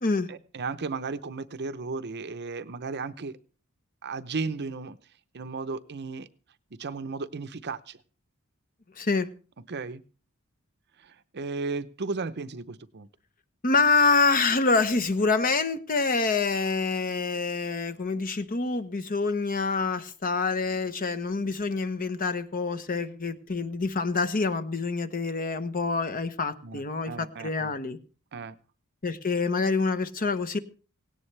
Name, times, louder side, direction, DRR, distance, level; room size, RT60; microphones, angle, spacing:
voice 1, 0.3-3.3 4.0-5.0 5.3-6.3 6.8-8.0 9.7-10.0 11.0-13.1 26.6-27.7 28.3-28.6, right 4 dB, 50° right, 12 dB, 0.7 m, -35 dB
voice 2, 9.0-9.3 13.6-28.0 29.0-30.6, left 4 dB, 40° left, 10 dB, 1.0 m, -26 dB
17.5 x 17.0 x 3.3 m, 0.37 s
head